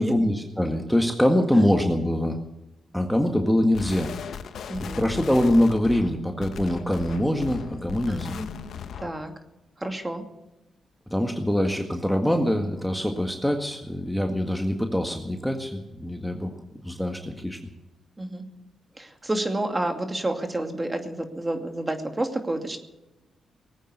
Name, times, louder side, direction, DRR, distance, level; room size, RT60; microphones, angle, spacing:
voice 1, 0.0-2.4 2.9-4.1 4.8-8.4 11.1-16.5 16.8-17.6, left 1 dB, 5° left, 3 dB, 1.8 m, -24 dB
sound 1, 3.7-9.2, left 7 dB, 75° left, 1.0 m, -37 dB
voice 2, 4.7-5.0 8.1-9.3 9.8-10.2 18.2-18.4 19.0-22.8, right 1 dB, 20° right, 5 dB, 2.5 m, -30 dB
19.5 x 9.1 x 8.1 m, 1.0 s
cardioid pair, 65°, 0 cm